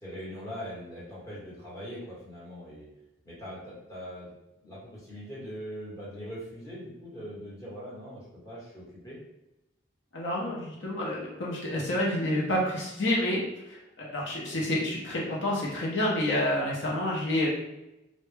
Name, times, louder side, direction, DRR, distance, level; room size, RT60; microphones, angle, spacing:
voice 1, 0.0-2.9 3.2-4.3 4.6-9.2, equal, 20° left, -8 dB, 1.0 m, -41 dB
voice 2, 10.1-13.4 13.7-17.5, left 1 dB, 70° left, -4 dB, 0.6 m, -29 dB
2.1 x 2.0 x 3.1 m, 0.93 s
head